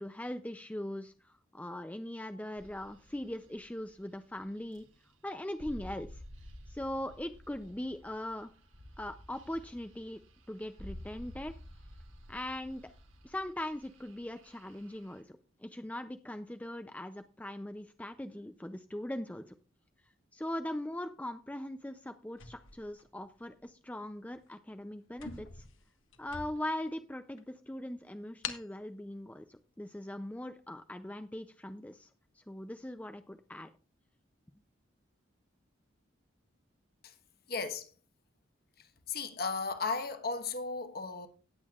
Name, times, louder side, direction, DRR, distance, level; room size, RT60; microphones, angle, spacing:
voice 1, 0.0-4.9 5.2-6.2 6.7-8.5 9.0-10.2 10.5-11.5 12.3-12.8 13.2-19.4 20.3-25.6 26.2-32.1 32.3-33.7, left 1 dB, 5° left, 0.4 m, -40 dB
metallic creak with reverb, 2.6-15.2, equal, 80° right, 2.1 m, -52 dB
sound 1, 22.3-23.6 24.3-24.5 24.8-24.9 25.1-26.9 27.4-27.5 28.4-28.7, left 6 dB, 80° left, 1.4 m, -45 dB
voice 2, 37.5-37.9 39.1-41.3, left 4 dB, 50° left, 1.2 m, -35 dB
18.0 x 8.3 x 2.4 m
head